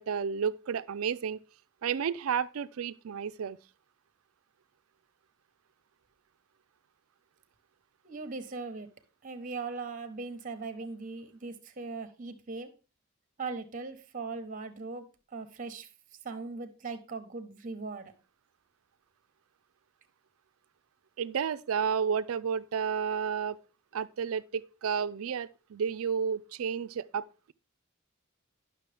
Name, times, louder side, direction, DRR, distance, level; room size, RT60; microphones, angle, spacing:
voice 1, 0.0-1.4 1.8-3.6 21.2-23.6 23.9-27.5, right 7 dB, 80° right, 0.4 m, -31 dB
voice 2, 8.0-8.9 9.2-12.7 13.4-15.9 16.2-18.1, right 4 dB, 40° right, 1.0 m, -39 dB
10.5 x 6.1 x 3.4 m
head